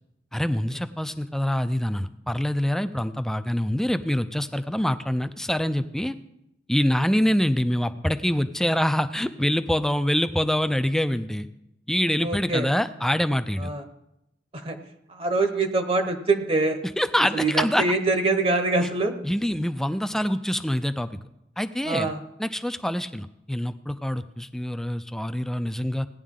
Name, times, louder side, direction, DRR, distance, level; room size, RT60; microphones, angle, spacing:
voice 1, 0.3-6.1 6.7-11.5 11.9-13.7 17.0-17.8 19.2-21.1 21.6-22.1 22.4-26.1, equal, 5° left, 11 dB, 0.4 m, -25 dB
voice 2, 12.2-12.7 13.6-13.8 14.5-14.8 15.1-16.8 17.3-19.1 21.8-22.2, right 3 dB, 30° right, 7 dB, 0.9 m, -24 dB
17.5 x 10.0 x 3.7 m, 0.86 s
head